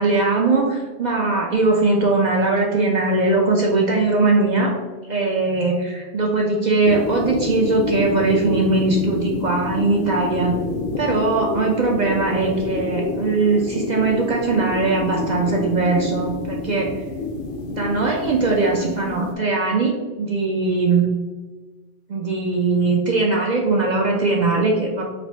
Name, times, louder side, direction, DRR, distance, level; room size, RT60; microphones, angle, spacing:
voice 1, 0.0-4.8 5.1-10.5 11.0-16.9 17.7-21.1 22.1-25.0, right 3 dB, 55° right, -1 dB, 0.6 m, -20 dB
sound 1, 6.8-19.3, left 3 dB, 65° left, 0.7 m, -28 dB
4.9 x 2.1 x 3.4 m, 1.3 s
omnidirectional pair, 1.1 m